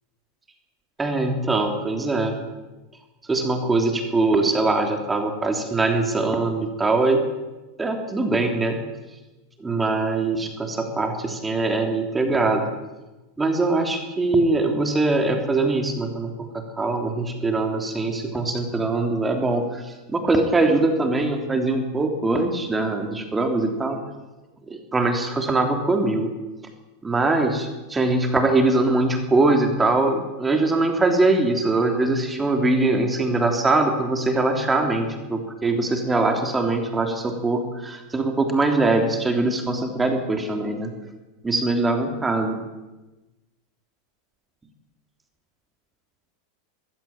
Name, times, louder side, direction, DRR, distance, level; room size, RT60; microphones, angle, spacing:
voice 1, 1.0-2.4 3.3-7.2 7.8-8.8 9.6-12.7 13.4-24.0 24.7-26.3 27.0-40.9 41.4-42.6, right 2 dB, 15° right, 4 dB, 3.2 m, -22 dB
21.0 x 15.0 x 8.9 m, 1.1 s
hypercardioid pair, 105°, 0 cm